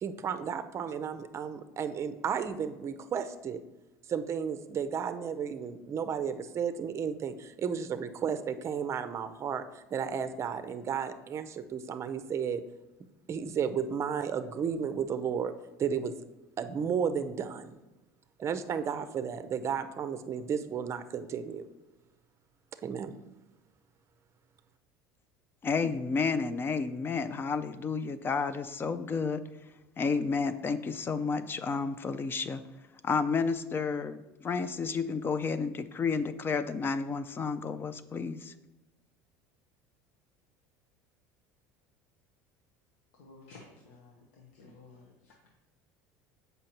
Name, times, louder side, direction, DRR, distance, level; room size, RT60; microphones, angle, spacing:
voice 1, 0.0-3.6 4.1-12.6 13.3-15.5 15.8-16.1 16.6-17.8 18.4-21.7 22.8-23.2, right 7 dB, 35° right, 10 dB, 0.5 m, -33 dB
voice 2, 25.6-29.4 30.0-32.6 33.0-38.5, left 5 dB, 30° left, 12 dB, 0.4 m, -31 dB
voice 3, 43.1-45.5, left 3 dB, 85° left, 0 dB, 0.9 m, -54 dB
7.6 x 5.5 x 2.9 m, 1.1 s
supercardioid pair, 100°, 8 cm